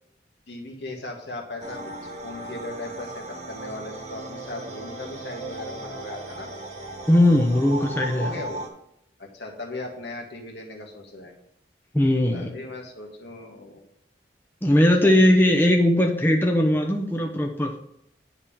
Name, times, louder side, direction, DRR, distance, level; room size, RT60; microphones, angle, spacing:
voice 1, 0.5-1.9 2.2-6.5 7.7-8.7 9.2-11.3 12.3-13.9 15.0-15.2 15.9-16.1, left 2 dB, 75° left, 1 dB, 1.8 m, -38 dB
sound 1, 1.6-8.7, right 2 dB, 40° right, 1.4 m, -37 dB
voice 2, 7.1-8.3 11.9-12.5 14.6-17.7, left 1 dB, 10° left, 1 dB, 0.8 m, -19 dB
9.6 x 3.6 x 7.2 m, 0.76 s
head